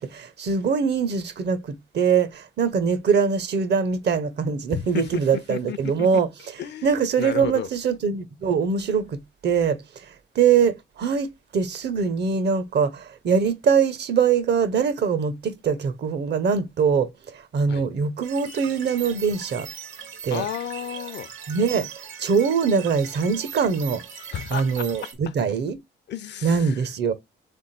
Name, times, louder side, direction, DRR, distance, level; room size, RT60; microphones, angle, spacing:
voice 1, 0.0-6.3 6.8-9.8 10.3-19.7 20.2-20.4 21.5-21.9 22.2-24.0 24.5-25.8 26.4-27.1, right 6 dB, 60° right, 0.8 m, -23 dB
voice 2, 4.7-6.2 6.6-7.7 17.7-17.9 20.3-21.3 24.3-25.3 26.1-26.9, left 9 dB, 60° left, 0.6 m, -33 dB
sound 1, 18.2-25.1, right 7 dB, 80° right, 1.4 m, -40 dB
3.6 x 3.5 x 4.2 m
cardioid pair, 90°, 20 cm